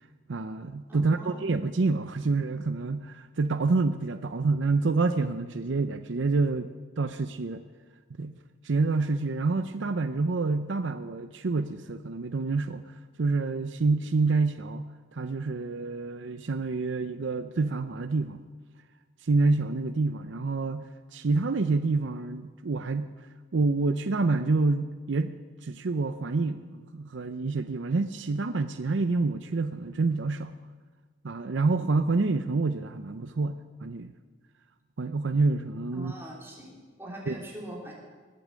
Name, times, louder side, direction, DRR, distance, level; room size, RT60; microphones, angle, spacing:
voice 1, 0.3-6.7 7.0-7.6 8.2-8.3 8.6-12.8 13.2-18.4 19.2-23.1 23.5-25.4 25.6-30.5 31.2-34.1 35.0-36.1 37.3-37.4, right 3 dB, 70° right, 10 dB, 0.6 m, -27 dB
voice 2, 0.9-1.5 35.9-37.9, right 1 dB, 10° right, -3 dB, 3.2 m, -42 dB
20.0 x 8.4 x 7.5 m, 1.4 s
head